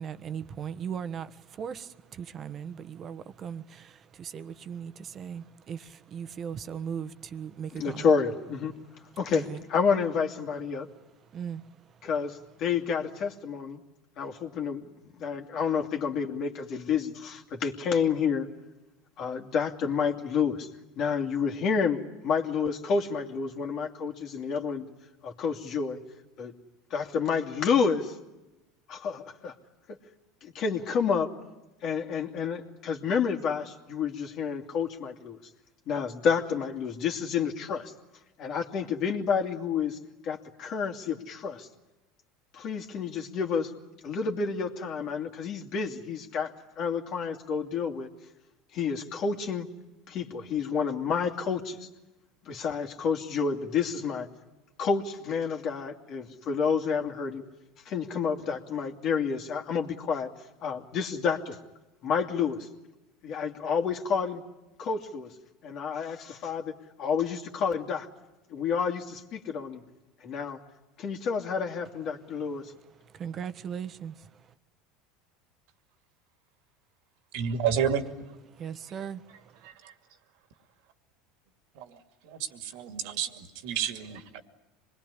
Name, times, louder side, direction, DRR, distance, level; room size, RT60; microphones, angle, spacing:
voice 1, 0.0-8.1 9.3-9.6 11.3-11.6 73.1-74.1 78.6-79.2, right 8 dB, 40° right, 12 dB, 1.3 m, -38 dB
voice 2, 7.7-8.7 9.2-10.9 12.0-13.8 14.2-18.5 19.2-20.7 21.0-24.9 25.2-26.0 26.4-26.5 26.9-28.2 28.9-29.5 30.4-31.3 31.8-35.4 35.9-37.9 38.4-40.0 40.2-41.7 42.5-43.7 44.0-48.1 48.7-49.7 50.1-51.9 52.4-54.3 54.8-57.4 57.8-60.3 60.6-61.6 62.0-62.7 63.2-64.4 64.8-65.3 65.6-66.7 67.0-68.1 68.5-69.8 70.2-70.6 71.0-72.7, left 6 dB, 50° left, 3 dB, 2.7 m, -29 dB
voice 3, 77.3-78.0 79.6-79.9 81.8-81.9 82.3-84.4, right 8 dB, 70° right, 9 dB, 2.4 m, -30 dB
25.5 x 21.0 x 10.0 m, 1.0 s
hypercardioid pair, 95°, 0 cm